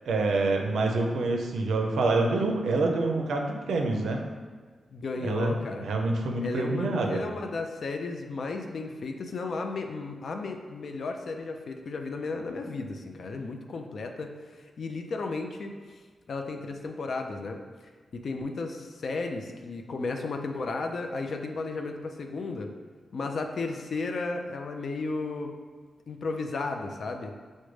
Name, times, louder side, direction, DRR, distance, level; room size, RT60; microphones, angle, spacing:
voice 1, 0.1-4.2 5.2-7.2, right 2 dB, 85° right, 2 dB, 0.4 m, -26 dB
voice 2, 4.9-5.8 6.4-15.7 16.3-17.6 18.1-22.7 23.1-25.5 26.1-27.3, left 3 dB, 70° left, 4 dB, 0.4 m, -34 dB
4.9 x 2.1 x 3.1 m, 1.5 s
cardioid pair, 55°, 0 cm